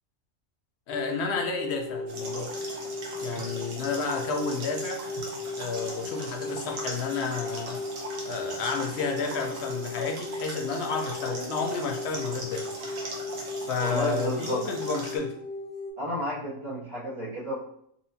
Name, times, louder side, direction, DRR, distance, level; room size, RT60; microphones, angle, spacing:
voice 1, 0.9-2.5 3.2-5.0 5.6-7.8 8.2-12.7 13.6-15.3, left 5 dB, 60° left, 3 dB, 0.8 m, -31 dB
sound 1, 0.9-15.9, left 2 dB, 10° left, 0.9 m, -36 dB
sound 2, 2.1-15.2, right 2 dB, 80° right, 1.2 m, -40 dB
voice 2, 13.8-14.6 16.0-17.5, equal, 30° right, -9 dB, 0.7 m, -32 dB
4.1 x 2.6 x 2.7 m, 0.69 s
omnidirectional pair, 1.3 m